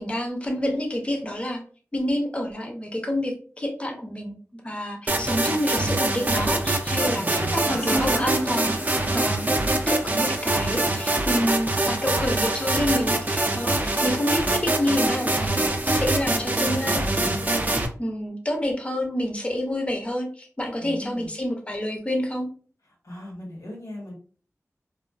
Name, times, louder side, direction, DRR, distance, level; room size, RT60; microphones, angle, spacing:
voice 1, 0.0-1.6 1.9-4.4 4.6-8.7 9.1-9.5 9.9-22.5, left 1 dB, 20° left, 2 dB, 0.5 m, -28 dB
sound 1, 5.1-17.9, right 2 dB, 30° right, 0.4 m, -24 dB
voice 2, 6.9-8.0 16.9-17.5 20.8-21.3 23.0-24.1, left 1 dB, 70° left, -2 dB, 1.3 m, -39 dB
sound 2, 7.6-12.9, right 1 dB, 50° left, 0.9 m, -36 dB
2.4 x 2.3 x 2.3 m, 0.42 s
wide cardioid pair, 70°, 6 cm